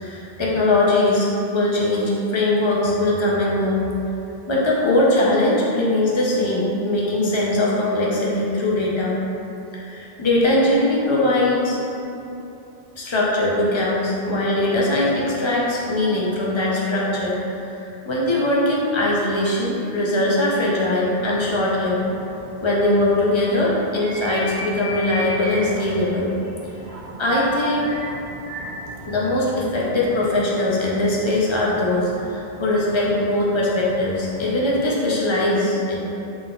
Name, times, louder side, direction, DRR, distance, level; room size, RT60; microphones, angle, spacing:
voice 1, 0.0-3.8 4.5-9.2 9.8-11.8 13.0-17.4 17.6-22.0 22.6-26.3 27.2-27.9 29.1-36.0, left 1 dB, 40° left, -5 dB, 0.4 m, -21 dB
sound 1, 21.1-35.1, right 1 dB, 70° right, 0.8 m, -36 dB
3.8 x 3.6 x 2.3 m, 2.8 s
omnidirectional pair, 1.1 m